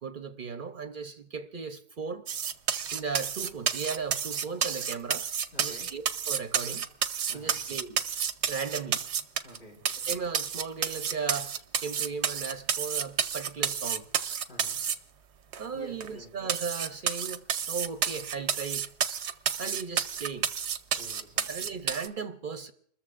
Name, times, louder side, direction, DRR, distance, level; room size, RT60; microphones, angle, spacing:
voice 1, 0.0-2.3 2.9-5.3 5.6-6.9 7.3-8.0 8.5-9.0 10.1-14.1 15.6-18.9 19.6-20.5 21.5-22.7, right 5 dB, 55° right, 0.8 m, -36 dB
sound 1, 2.3-9.6 9.8-14.9 15.5-15.6 16.0-16.1 16.5-22.1, right 8 dB, 90° right, 1.0 m, -30 dB
voice 2, 5.5-5.9 7.3-7.6 9.4-10.0 14.5-14.8 15.7-16.3 21.0-21.5, left 1 dB, 65° left, 4.4 m, -49 dB
30.0 x 14.0 x 2.4 m
omnidirectional pair, 1.1 m